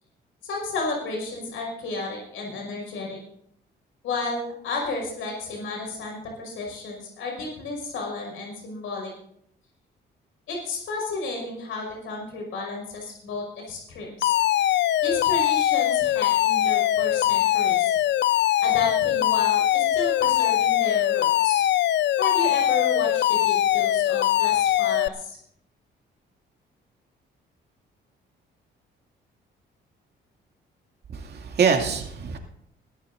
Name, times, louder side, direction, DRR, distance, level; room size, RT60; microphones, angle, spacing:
voice 1, 0.4-3.2 4.0-9.1 10.5-14.4 15.0-18.0 18.6-21.7 22.2-25.4, left 3 dB, 85° left, 0 dB, 5.5 m, -32 dB
Alarm, 14.2-25.1, left 13 dB, 60° left, 0.4 m, -22 dB
voice 2, 31.1-32.4, right 6 dB, 55° right, 2 dB, 2.5 m, -24 dB
21.5 x 14.0 x 2.6 m, 0.69 s
cardioid pair, 90°, 20 cm